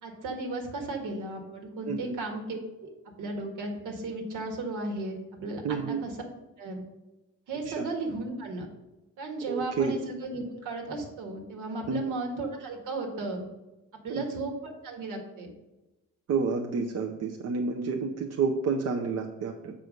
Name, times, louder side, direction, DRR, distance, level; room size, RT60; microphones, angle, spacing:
voice 1, 0.0-2.9 3.2-6.2 6.6-6.8 7.5-8.7 9.2-13.5 14.0-15.5, right 2 dB, 85° right, 2 dB, 1.8 m, -35 dB
voice 2, 5.6-6.0 7.7-7.9 9.5-9.9 11.9-12.0 14.1-14.2 16.3-19.7, right 5 dB, 60° right, 2 dB, 0.8 m, -29 dB
6.9 x 4.9 x 5.2 m, 1.0 s
cardioid pair, 90°, 30 cm